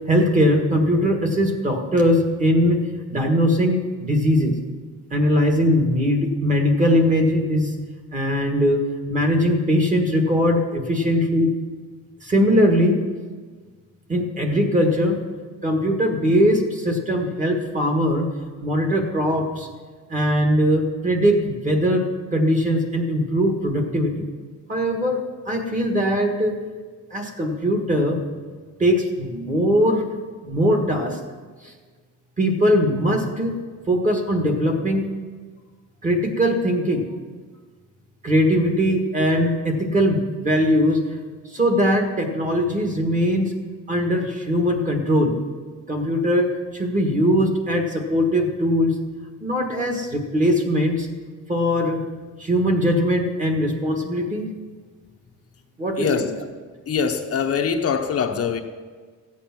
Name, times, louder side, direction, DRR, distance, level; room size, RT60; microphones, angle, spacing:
voice 1, 0.1-4.5 5.1-7.7 8.1-8.8 9.1-11.5 12.2-13.0 14.1-15.2 15.6-18.3 18.6-19.7 20.1-24.3 24.7-25.2 25.4-26.6 27.1-28.2 28.8-30.0 30.4-31.2 32.4-33.5 33.9-35.1 36.0-37.0 38.2-41.0 41.5-43.5 43.9-45.3 45.9-49.0 49.4-51.1 51.5-52.0 52.4-54.5 55.8-56.3, equal, 25° right, 3 dB, 1.6 m, -20 dB
voice 2, 56.0-56.5 56.9-58.6, left 6 dB, 45° left, 4 dB, 0.8 m, -23 dB
15.0 x 8.4 x 5.9 m, 1.5 s
cardioid pair, 180°, 33 cm